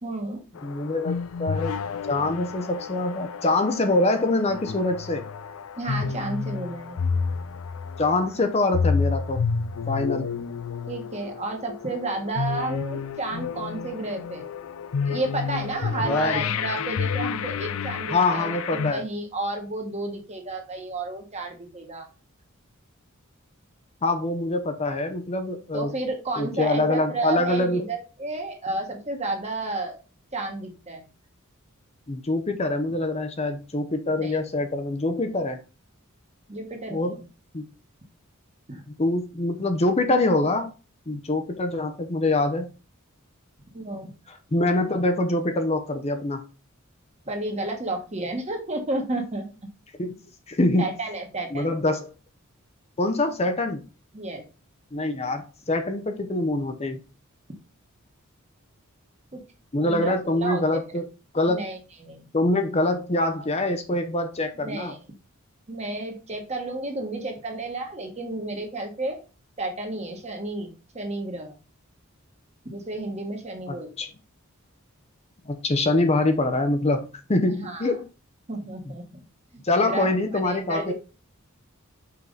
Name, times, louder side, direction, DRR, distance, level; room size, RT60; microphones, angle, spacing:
voice 1, 0.0-0.4 5.8-7.1 10.9-14.5 15.1-22.1 25.7-30.0 30.3-31.1 34.1-34.4 36.5-37.3 38.7-38.8 43.7-44.1 47.3-49.4 50.8-51.7 54.1-54.4 59.3-59.4 59.8-60.9 61.5-62.3 64.6-65.2 65.7-69.2 69.6-71.5 72.6-73.9 77.5-77.9 78.5-79.2 79.5-80.1 80.4-80.9, right 2 dB, 30° right, 1.4 m, -32 dB
sound 1, 0.6-18.9, left 5 dB, 85° left, 0.4 m, -30 dB
voice 2, 0.6-1.7 2.1-5.2 8.0-9.4 9.9-10.3 16.0-16.4 18.1-19.0 24.0-25.9 26.4-27.8 32.1-35.6 36.9-37.2 37.5-37.6 39.0-40.7 41.1-42.7 44.5-46.4 50.0-50.1 50.5-50.9 51.5-52.1 53.0-53.8 54.9-57.0 59.7-61.1 61.3-61.6 62.3-64.9 73.7-74.1 75.5-78.0 79.6-80.9, left 2 dB, 30° left, 0.7 m, -24 dB
5.7 x 4.7 x 3.9 m
head